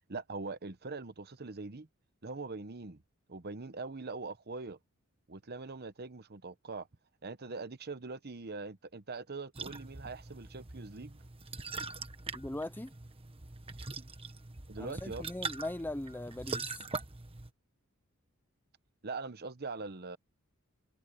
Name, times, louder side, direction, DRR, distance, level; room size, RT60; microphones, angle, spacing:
voice 1, 0.1-1.9 2.2-3.0 3.3-4.8 5.3-6.9 7.2-11.2 14.7-15.3 19.0-20.2, right 3 dB, 45° right, 1.0 m, -42 dB
sound 1, 9.5-17.5, right 4 dB, 25° right, 1.4 m, -42 dB
voice 2, 12.3-12.9 14.8-16.8, left 1 dB, 10° left, 0.6 m, -40 dB
head